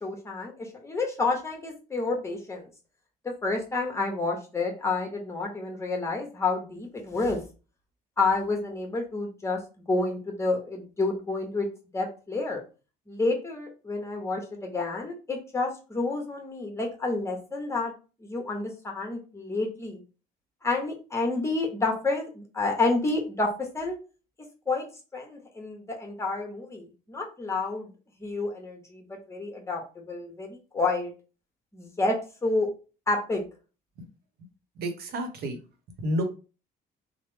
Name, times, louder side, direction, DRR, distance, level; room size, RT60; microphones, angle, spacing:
voice 1, 0.0-2.7 3.2-7.4 8.2-9.6 9.9-11.7 11.9-12.6 13.1-17.9 18.2-20.0 20.6-24.0 24.7-24.8 25.1-27.9 28.2-31.1 31.7-32.2 32.4-32.7 33.1-33.4, left 3 dB, 15° left, 1 dB, 1.0 m, -29 dB
voice 2, 34.8-35.6 36.0-36.2, equal, 70° right, 6 dB, 0.9 m, -29 dB
3.2 x 2.1 x 3.3 m, 0.34 s
cardioid pair, 110°, 17 cm